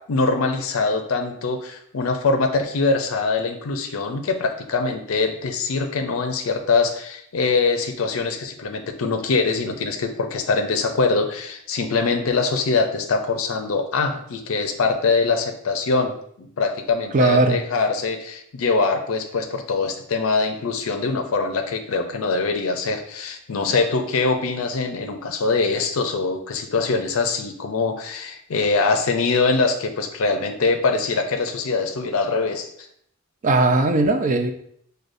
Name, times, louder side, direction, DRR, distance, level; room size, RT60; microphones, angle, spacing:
voice 1, 0.1-32.7, left 4 dB, 75° left, 5 dB, 0.5 m, -23 dB
voice 2, 17.1-17.6 33.4-34.5, right 2 dB, 40° right, 6 dB, 0.4 m, -18 dB
6.2 x 2.2 x 2.6 m, 0.68 s
head